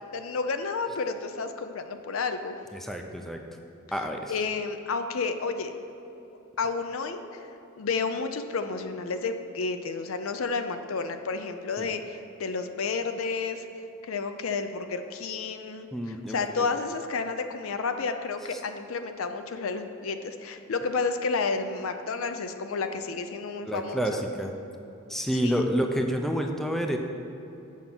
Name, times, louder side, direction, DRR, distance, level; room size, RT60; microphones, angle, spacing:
voice 1, 0.1-2.6 4.3-5.7 6.6-7.5 7.8-13.6 14.0-24.2 25.3-25.6, left 4 dB, 75° left, 8 dB, 0.5 m, -31 dB
voice 2, 2.7-3.4 3.9-4.3 11.8-11.9 15.9-16.7 23.7-24.5 25.1-27.0, equal, ahead, 3 dB, 0.4 m, -29 dB
7.2 x 5.3 x 5.9 m, 3.0 s
head